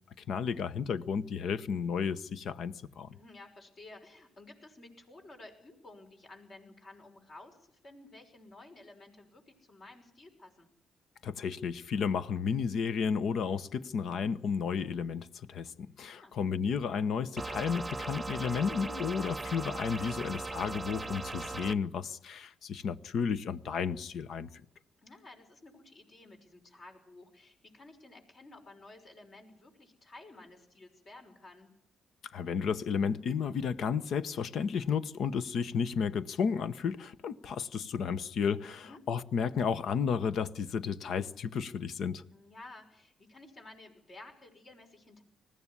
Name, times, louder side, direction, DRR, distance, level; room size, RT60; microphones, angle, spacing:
voice 1, 0.3-3.1 11.2-24.5 32.3-42.2, left 6 dB, 70° left, 0.9 m, -32 dB
voice 2, 3.1-10.7 16.1-16.4 25.0-31.7 38.8-39.0 42.3-45.2, left 2 dB, 50° left, 5.8 m, -53 dB
sound 1, 17.4-21.8, right 3 dB, 20° right, 0.9 m, -38 dB
20.0 x 15.0 x 9.9 m
supercardioid pair, 70°, 0 cm